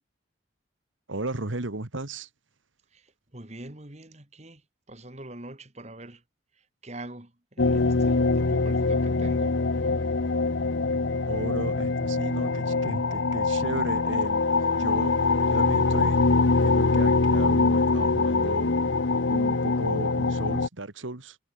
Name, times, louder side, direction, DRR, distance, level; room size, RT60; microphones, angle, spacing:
voice 1, 1.1-2.3 10.3-10.4 11.3-14.4 14.8-16.2 16.6-18.8 19.3-21.4, right 2 dB, 85° right, 1.9 m, -35 dB
voice 2, 2.9-4.6 4.9-6.2 6.8-9.9, right 1 dB, 35° right, 2.5 m, -44 dB
sound 1, 7.6-20.7, left 3 dB, 70° left, 0.9 m, -23 dB
head